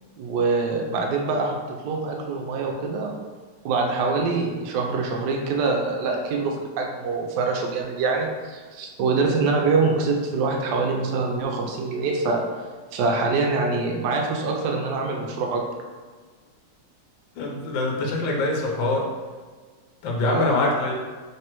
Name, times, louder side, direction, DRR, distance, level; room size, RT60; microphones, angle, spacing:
voice 1, 0.2-3.2 3.6-12.5 12.9-15.6 20.3-20.6, right 4 dB, 80° right, 1 dB, 0.9 m, -24 dB
voice 2, 17.4-19.0 20.0-20.9, left 2 dB, 70° left, -1 dB, 1.3 m, -24 dB
3.3 x 3.3 x 2.9 m, 1.4 s
omnidirectional pair, 2.4 m